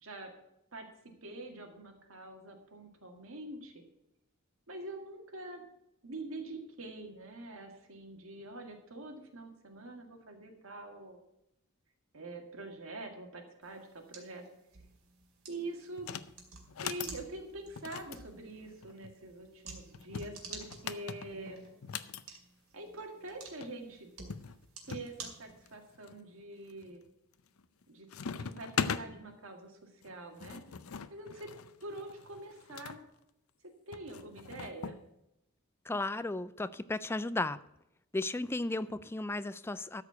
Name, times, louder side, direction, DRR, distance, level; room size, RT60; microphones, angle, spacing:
voice 1, 1.2-3.8 4.7-5.7 6.0-11.2 12.1-14.4 15.5-16.1 16.8-21.6 22.7-24.1 24.9-27.0 27.9-28.1 28.3-30.6 31.1-31.5 31.8-33.0 33.9-35.0, right 2 dB, 70° right, 3 dB, 2.0 m, -45 dB
sound 1, 13.6-26.0, right 4 dB, 90° right, 2.4 m, -52 dB
sound 2, 16.0-16.3 16.7-17.2 17.8-19.1 19.9-22.2 23.3-23.4 23.6-23.7 24.3-25.1 25.7-26.2 26.7-27.1 27.4-27.8 28.1-29.1 30.0-33.0 33.9-35.0, left 6 dB, 80° left, 0.6 m, -40 dB
voice 2, 35.9-37.6 38.1-40.0, left 2 dB, 10° left, 15 dB, 0.3 m, -34 dB
13.0 x 4.9 x 8.0 m, 0.84 s
head